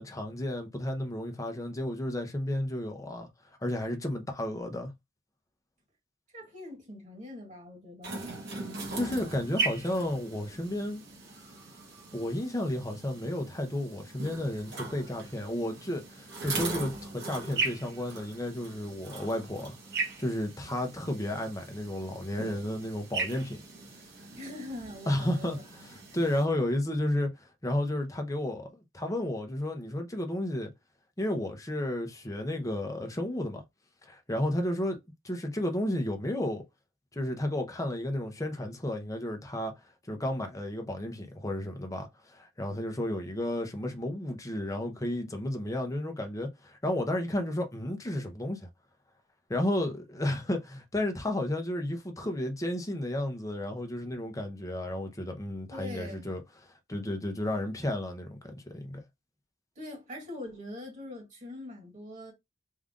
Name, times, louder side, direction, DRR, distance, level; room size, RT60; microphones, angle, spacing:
voice 1, 0.0-3.3 3.6-4.9 8.9-11.0 12.1-19.7 20.2-23.6 25.1-30.7 31.2-33.6 34.0-35.0 35.2-36.6 37.1-39.7 40.1-48.7 49.5-59.0, left 1 dB, 15° left, 0.8 m, -32 dB
voice 2, 6.3-8.2 24.3-25.5 55.7-56.3 59.8-62.3, left 1 dB, 35° right, 1.8 m, -42 dB
sound 1, 8.0-26.5, right 3 dB, 55° right, 1.4 m, -39 dB
3.6 x 2.6 x 3.6 m
head